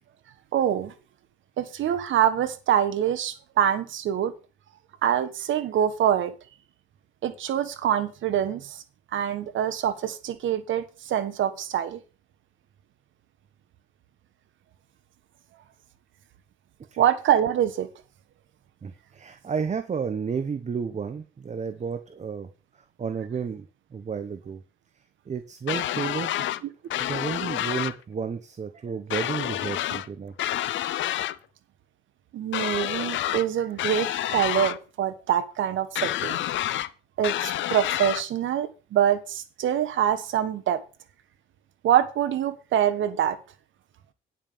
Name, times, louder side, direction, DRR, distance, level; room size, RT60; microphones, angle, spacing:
voice 1, 0.5-0.9 1.6-4.3 5.0-6.3 7.2-8.8 9.1-12.0 17.0-17.9 32.3-36.4 37.2-40.8 41.8-43.4, right 10 dB, 75° right, 12 dB, 1.3 m, -25 dB
voice 2, 18.8-22.5 22.7-23.7 23.9-24.6 25.3-26.3 27.1-30.3, right 6 dB, 35° right, 10 dB, 1.0 m, -32 dB
sound 1, 25.7-26.6 26.9-28.0 29.1-30.1 30.4-31.4 32.5-33.5 33.8-34.8 36.0-36.9 37.2-38.2, left 13 dB, 70° left, 0.7 m, -28 dB
9.9 x 5.6 x 6.8 m, 0.34 s
cardioid pair, 90°, 20 cm